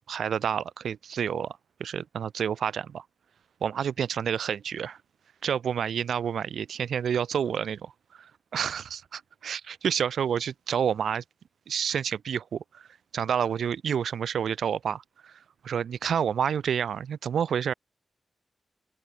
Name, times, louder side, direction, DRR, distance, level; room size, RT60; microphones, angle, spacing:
voice 1, 0.0-3.0 3.6-5.0 5.4-11.2 11.7-12.9 13.1-15.4 15.6-17.7, right 8 dB, 90° right, 1.3 m, -29 dB
open air
wide cardioid pair, 105°, 0 cm